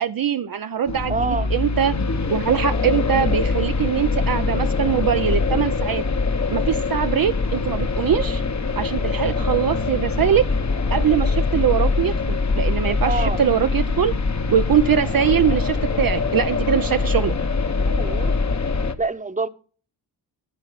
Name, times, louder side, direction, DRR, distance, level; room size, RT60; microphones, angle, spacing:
voice 1, 0.0-1.9 2.3-6.0 6.5-8.4 8.8-10.4 10.9-14.1 14.5-17.3, right 9 dB, 50° right, 9 dB, 0.6 m, -22 dB
sound 1, 0.9-18.9, left 4 dB, 35° left, 1.1 m, -23 dB
voice 2, 1.1-1.5 13.1-13.4 17.9-18.3 19.0-19.5, right 3 dB, 15° right, 11 dB, 1.0 m, -26 dB
13.0 x 4.5 x 5.8 m, 0.40 s
cardioid pair, 50°, 46 cm